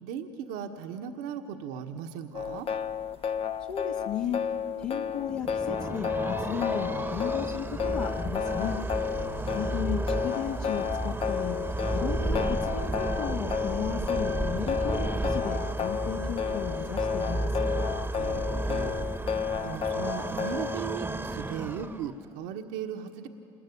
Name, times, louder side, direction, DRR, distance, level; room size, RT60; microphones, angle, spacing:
voice 1, 0.0-2.7 9.1-9.6 18.1-19.1 19.6-23.3, right 8 dB, 75° right, 4 dB, 1.3 m, -38 dB
sound 1, 2.3-20.8, left 8 dB, 40° left, 0.8 m, -32 dB
voice 2, 3.7-4.4 4.8-8.8 9.5-11.6 11.9-17.6, left 8 dB, 65° left, -1 dB, 1.9 m, -35 dB
sound 2, 5.3-22.3, right 2 dB, 10° right, 1.1 m, -32 dB
27.5 x 20.5 x 9.9 m, 2.8 s
hypercardioid pair, 75°, 15 cm